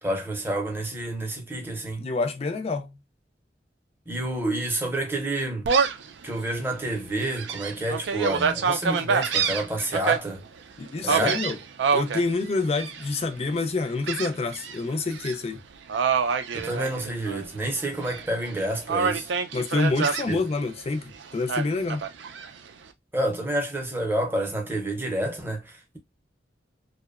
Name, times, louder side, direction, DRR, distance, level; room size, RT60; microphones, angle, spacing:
voice 1, 0.0-2.0 4.1-5.7 6.2-10.4 11.0-11.4 16.5-19.3 20.3-20.4 23.1-26.0, right 1 dB, 10° right, 0.6 m, -29 dB
voice 2, 2.0-3.0 10.8-11.6 11.9-15.6 19.5-22.1, left 3 dB, 35° left, 0.4 m, -27 dB
Gull seagull, 5.6-6.1 6.6-6.7 7.2-10.2 11.1-12.2 12.7-13.2 14.1-14.8 15.1-15.3 15.9-17.4 17.8-18.5 18.9-20.3 21.5-22.5, right 6 dB, 85° right, 0.4 m, -26 dB
2.7 x 2.1 x 2.3 m
head